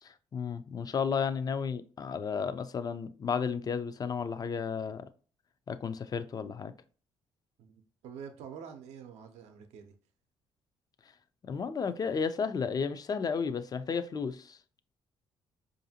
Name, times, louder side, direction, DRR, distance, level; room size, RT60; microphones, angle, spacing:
voice 1, 0.0-5.0 5.7-6.7 11.5-14.6, left 6 dB, 35° left, 0.4 m, -33 dB
voice 2, 7.6-9.9, right 7 dB, 85° right, 0.5 m, -47 dB
4.8 x 2.6 x 2.7 m
cardioid pair, 75°, 11 cm